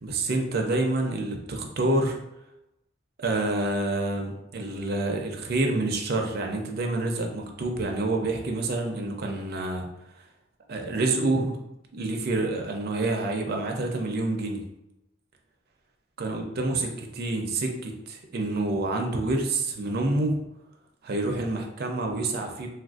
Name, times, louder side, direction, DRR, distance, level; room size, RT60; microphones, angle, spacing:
voice 1, 0.0-2.2 3.2-9.9 10.7-11.6 11.9-14.6 16.2-20.4 21.0-22.7, right 2 dB, 55° right, 3 dB, 0.5 m, -27 dB
3.4 x 2.5 x 2.3 m, 0.88 s
head